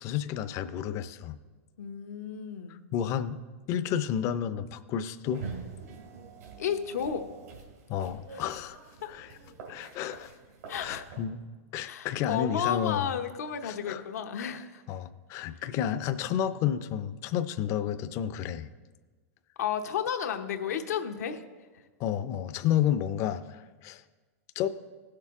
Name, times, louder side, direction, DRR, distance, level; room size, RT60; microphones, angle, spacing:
voice 1, 0.0-1.4 2.9-3.4 3.7-5.4 7.9-8.8 9.1-9.3 9.7-10.3 10.8-11.4 11.7-13.1 13.6-14.0 14.9-18.7 22.0-24.0 24.6-24.7, left 10 dB, 35° left, 11 dB, 0.5 m, -31 dB
voice 2, 1.8-2.8 6.6-7.3 8.3-8.4 9.0-9.1 10.7-11.1 11.8-14.8 15.4-15.6 19.6-21.4 21.7-21.8, left 8 dB, 90° left, 6 dB, 0.9 m, -33 dB
sound 1, 5.2-11.2, right 5 dB, 80° right, 2.4 m, -45 dB
15.5 x 6.6 x 3.6 m, 1.3 s
supercardioid pair, 140°, 8 cm